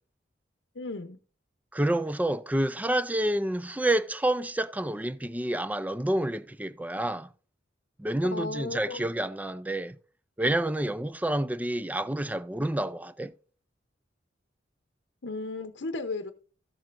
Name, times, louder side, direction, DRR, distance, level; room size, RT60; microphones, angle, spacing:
voice 1, 0.7-1.2 8.3-9.1 15.2-16.3, left 3 dB, 80° left, 0.8 m, -35 dB
voice 2, 1.7-7.3 8.0-10.0 10.4-13.3, right 1 dB, 10° right, 0.4 m, -28 dB
14.0 x 7.6 x 2.6 m
head